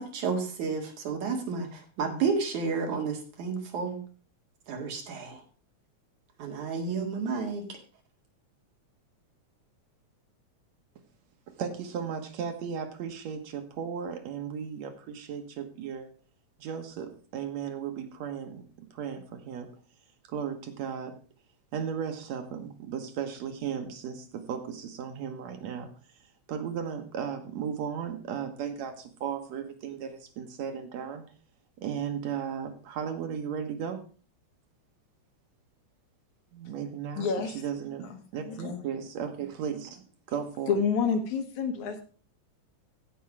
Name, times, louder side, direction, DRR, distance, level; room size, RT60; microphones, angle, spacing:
voice 1, 0.0-4.0 4.7-5.4 6.4-7.8, right 5 dB, 85° right, 3 dB, 3.4 m, -31 dB
voice 2, 11.5-16.1 16.6-19.7 20.3-21.1 21.7-25.9 26.5-31.2 31.8-34.0 36.5-37.3 37.5-40.0 40.3-40.7, right 7 dB, 70° right, 6 dB, 2.5 m, -35 dB
voice 3, 37.2-37.6 38.0-38.8 40.7-42.0, left 6 dB, 80° left, 5 dB, 3.0 m, -29 dB
15.5 x 5.4 x 4.8 m, 0.39 s
omnidirectional pair, 3.3 m